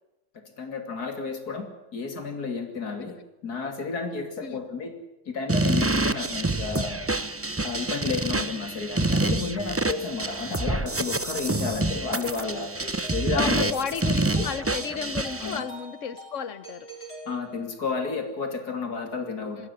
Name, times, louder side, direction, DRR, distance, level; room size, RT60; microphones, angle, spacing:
voice 1, 0.6-1.7 1.9-4.9 5.3-7.0 7.6-12.7 13.1-13.7 14.3-14.5 15.4-15.6 17.3-19.7, left 4 dB, 90° left, 6 dB, 3.2 m, -31 dB
sound 1, 5.5-15.6, right 2 dB, 20° right, 0.3 m, -27 dB
Doorbell, 12.6-18.0, left 2 dB, 40° left, 6.6 m, -44 dB
voice 2, 13.3-16.9 19.6-19.7, left 7 dB, 55° left, 14 dB, 1.4 m, -33 dB
20.5 x 16.5 x 9.8 m, 0.96 s
omnidirectional pair, 1.6 m